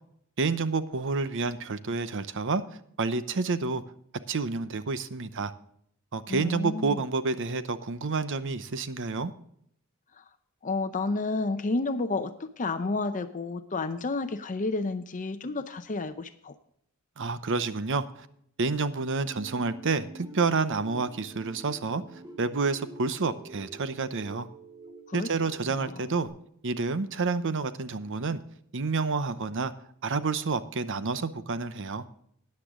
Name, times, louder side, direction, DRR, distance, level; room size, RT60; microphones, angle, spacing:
voice 1, 0.4-2.6 3.0-3.8 4.3-5.5 6.1-9.3 17.2-18.3 18.6-24.5 25.1-26.3 26.6-28.4 28.7-29.7 30.0-32.0, right 4 dB, 60° right, 13 dB, 0.8 m, -29 dB
voice 2, 6.3-7.0 10.2-10.3 10.6-16.5 25.1-25.3 25.7-26.0, left 3 dB, 35° left, 10 dB, 0.6 m, -31 dB
sound 1, 19.2-26.3, right 2 dB, 20° right, 2.2 m, -48 dB
13.5 x 9.7 x 3.7 m, 0.69 s
head